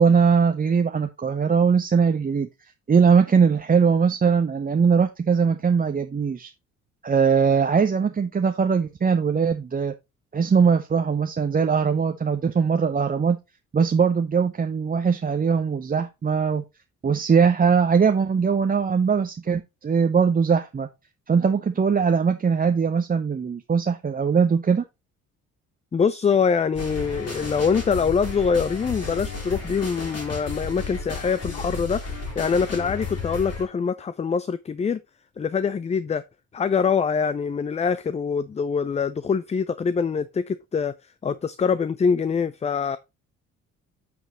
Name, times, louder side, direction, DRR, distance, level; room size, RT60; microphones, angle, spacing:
voice 1, 0.0-2.5 2.9-6.5 7.0-9.9 10.3-13.4 13.7-16.6 17.0-20.9 21.3-24.8, right 6 dB, 20° right, 0.7 m, -21 dB
voice 2, 25.9-32.0 32.4-35.0 35.4-36.2 36.5-40.9 41.2-43.0, left 6 dB, 15° left, 0.5 m, -24 dB
sound 1, 26.7-33.6, left 3 dB, 35° left, 3.3 m, -33 dB
9.2 x 6.0 x 3.0 m
figure-of-eight pair, 45°, 40 cm